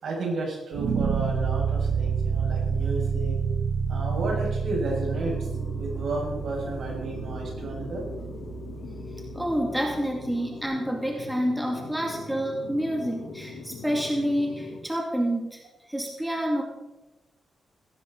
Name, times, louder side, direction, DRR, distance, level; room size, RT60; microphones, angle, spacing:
voice 1, 0.0-3.4 3.9-5.5 5.8-8.1, right 2 dB, 65° right, -1 dB, 6.5 m, -32 dB
sound 1, 0.7-9.8, right 6 dB, 85° right, 1.2 m, -29 dB
sound 2, 4.9-14.8, left 4 dB, 85° left, 3.6 m, -41 dB
voice 2, 9.3-15.6 15.9-16.6, equal, 5° right, 0 dB, 2.7 m, -28 dB
17.0 x 14.5 x 4.2 m, 1.1 s
wide cardioid pair, 120°, 0 cm